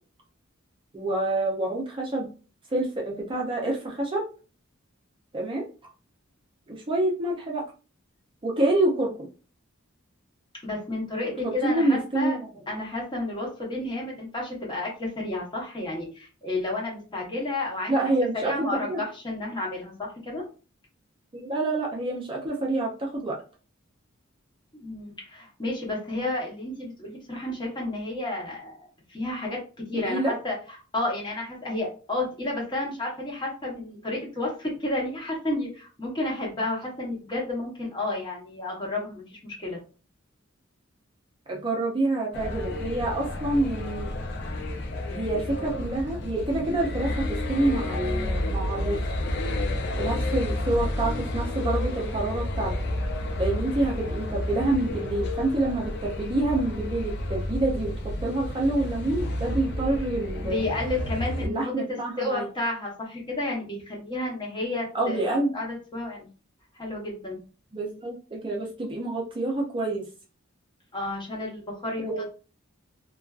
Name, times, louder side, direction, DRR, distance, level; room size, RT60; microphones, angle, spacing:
voice 1, 0.9-2.3 2.7-4.2 5.3-5.6 6.7-7.6 8.4-9.3 11.4-12.4 17.9-19.0 21.3-23.4 29.9-30.3 41.5-44.1 45.1-49.0 50.0-52.7 53.4-57.9 58.2-60.6 61.4-62.5 64.9-65.5 67.7-70.1 72.0-72.2, right 2 dB, 25° right, -1 dB, 0.5 m, -27 dB
voice 2, 10.6-12.4 12.7-18.1 18.4-20.4 24.8-30.5 30.9-39.8 60.4-66.3 66.8-67.4 70.9-72.1, left 2 dB, 25° left, -3 dB, 0.9 m, -31 dB
sound 1, 42.3-61.5, left 1 dB, 55° left, 0.4 m, -30 dB
2.5 x 2.3 x 2.3 m, 0.36 s
head